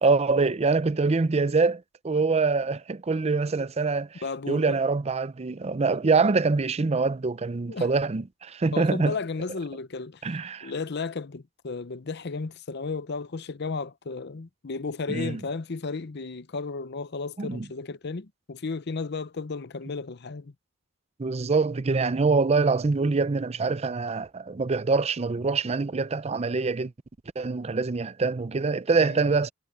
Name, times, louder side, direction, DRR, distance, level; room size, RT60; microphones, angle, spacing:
voice 1, 0.0-9.1 10.2-10.7 15.1-15.4 17.4-17.7 21.2-26.9 27.4-29.5, right 4 dB, 30° right, 0.5 m, -25 dB
voice 2, 4.2-4.8 7.7-7.9 8.7-10.3 10.6-20.5 29.0-29.3, left 4 dB, 55° left, 0.7 m, -34 dB
head